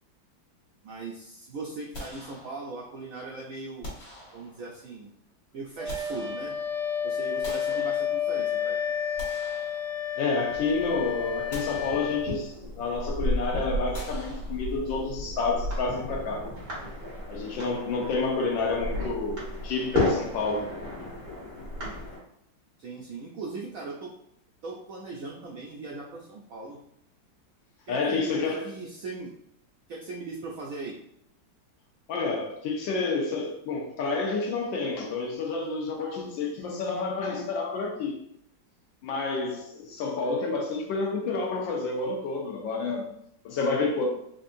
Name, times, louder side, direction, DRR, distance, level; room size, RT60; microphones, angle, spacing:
voice 1, 0.8-3.9 4.3-5.1 5.5-6.6 7.0-8.8 22.8-24.1 24.6-26.8 27.9-29.3 29.9-31.0, right 3 dB, 80° right, -2 dB, 0.7 m, -39 dB
sound 1, 1.9-3.0 3.8-4.9 5.5-6.9 7.4-8.5 9.0-10.4 10.8-11.0 11.5-12.6 13.9-15.1, left 1 dB, 70° left, 2.1 m, -45 dB
Wind instrument woodwind instrument, 5.8-12.3, left 8 dB, 40° left, 1.1 m, -30 dB
voice 2, 10.2-16.5 17.3-20.7 27.9-28.7 32.1-38.2 39.0-43.1 43.4-44.1, left 3 dB, 85° left, 0 dB, 1.6 m, -29 dB
sound 2, 10.5-22.2, left 1 dB, 45° right, 1.7 m, -34 dB
4.5 x 2.6 x 2.6 m, 0.73 s
omnidirectional pair, 2.0 m